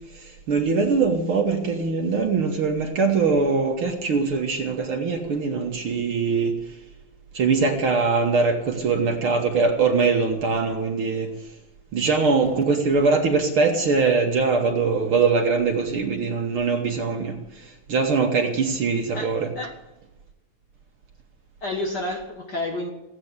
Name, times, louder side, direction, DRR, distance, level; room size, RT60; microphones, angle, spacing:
voice 1, 0.5-6.6 7.3-11.3 11.9-17.4 17.9-19.5, right 4 dB, 50° right, 2 dB, 2.0 m, -22 dB
voice 2, 19.1-19.7 21.6-22.9, left 2 dB, 40° left, 2 dB, 1.7 m, -30 dB
16.5 x 8.7 x 9.6 m, 1.0 s
omnidirectional pair, 3.5 m